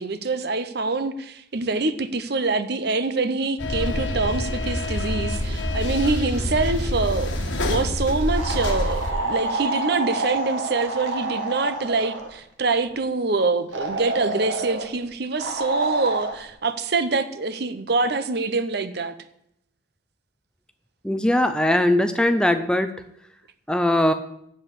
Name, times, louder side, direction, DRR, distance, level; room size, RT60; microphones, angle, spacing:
voice 1, 0.0-19.1, right 3 dB, 55° right, 0.8 m, -25 dB
sound 1, 3.6-9.1, left 1 dB, 70° left, 1.8 m, -26 dB
sound 2, 8.4-12.3 13.7-14.9 15.4-16.4, right 2 dB, 85° right, 1.9 m, -28 dB
voice 2, 21.0-22.9 23.7-24.1, left 1 dB, 5° left, 0.5 m, -20 dB
8.3 x 7.4 x 8.3 m
head